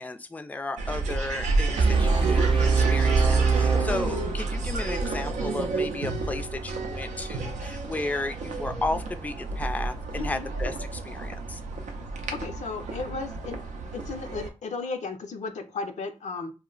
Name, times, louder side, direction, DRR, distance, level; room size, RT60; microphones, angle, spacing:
voice 1, 0.0-11.6, left 2 dB, 10° left, 8 dB, 0.4 m, -34 dB
sound 1, 0.8-14.5, right 3 dB, 90° right, 0.4 m, -30 dB
sound 2, 1.8-4.8, right 5 dB, 45° right, 0.6 m, -23 dB
voice 2, 10.2-10.5 12.3-13.6 13.9-16.5, left 4 dB, 75° left, 6 dB, 0.5 m, -34 dB
2.1 x 2.0 x 3.7 m, 0.30 s
cardioid pair, 45°, 12 cm